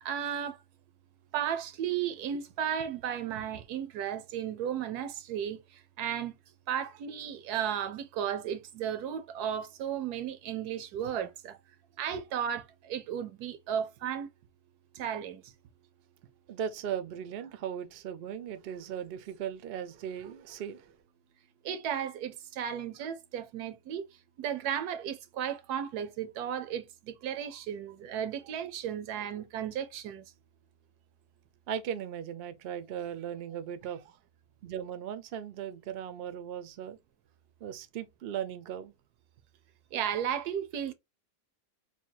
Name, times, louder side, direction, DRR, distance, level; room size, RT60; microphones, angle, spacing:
voice 1, 0.0-0.6 1.3-6.3 6.7-11.6 12.0-14.3 14.9-15.4 21.6-24.1 24.4-30.2 39.9-40.9, right 9 dB, 80° right, 1.1 m, -34 dB
voice 2, 16.5-20.9 31.7-34.2 34.6-37.0 37.6-38.9, right 9 dB, 65° right, 0.6 m, -38 dB
3.6 x 2.2 x 4.4 m
omnidirectional pair, 1.7 m